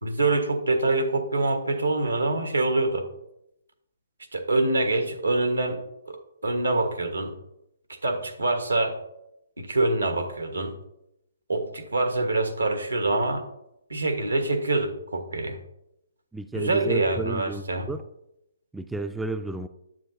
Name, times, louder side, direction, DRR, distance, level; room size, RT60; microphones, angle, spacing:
voice 1, 0.0-3.1 4.3-5.8 6.1-7.3 7.9-9.0 9.6-10.7 11.5-13.5 13.9-15.6 16.5-17.9, right 2 dB, 90° right, 6 dB, 1.3 m, -25 dB
voice 2, 16.3-18.0 18.7-19.7, right 2 dB, 5° right, 9 dB, 0.3 m, -32 dB
9.2 x 7.5 x 2.7 m, 0.82 s
figure-of-eight pair, 135°, 0 cm